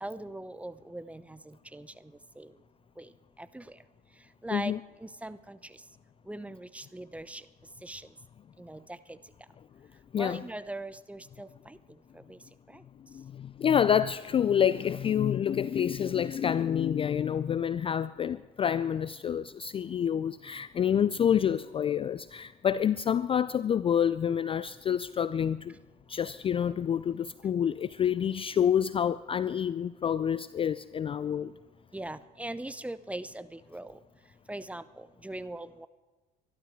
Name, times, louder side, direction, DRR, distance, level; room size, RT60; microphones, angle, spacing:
voice 1, 0.0-1.9 2.4-2.5 3.0-3.1 3.5-3.6 4.4-4.7 5.0-5.6 6.3-7.4 7.8-8.0 8.6-8.8 9.1-9.2 10.2-11.8 12.3-12.4 31.9-33.9 34.5-35.9, right 1 dB, 5° right, 0.7 m, -40 dB
voice 2, 13.1-25.7 26.1-31.5, left 8 dB, 25° left, 0.4 m, -28 dB
23.5 x 12.0 x 4.7 m
hypercardioid pair, 65°, 21 cm